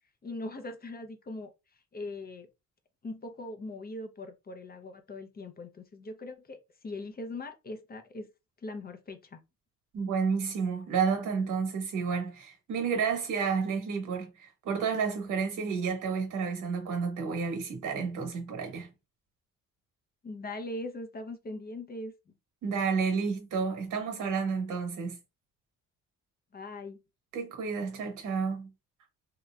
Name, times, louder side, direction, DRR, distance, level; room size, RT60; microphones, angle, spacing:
voice 1, 0.2-1.5 1.9-2.5 3.0-8.3 8.6-9.4 20.2-22.3 26.5-27.0, left 2 dB, 30° left, 0.7 m, -40 dB
voice 2, 9.9-18.9 22.6-25.2 27.3-28.7, right 5 dB, 80° right, 1.4 m, -31 dB
3.1 x 2.8 x 2.3 m
cardioid pair, 90°, 30 cm